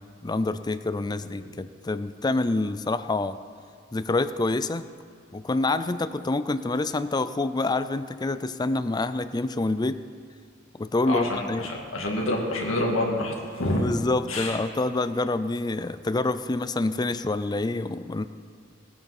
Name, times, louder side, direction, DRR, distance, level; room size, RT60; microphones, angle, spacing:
voice 1, 0.2-3.4 3.9-4.9 5.3-10.0 10.8-11.7 13.7-18.3, left 2 dB, 20° left, 13 dB, 0.4 m, -27 dB
voice 2, 11.1-13.8 14.3-14.6, left 1 dB, 85° left, -1 dB, 2.3 m, -28 dB
19.0 x 9.0 x 6.0 m, 2.3 s
head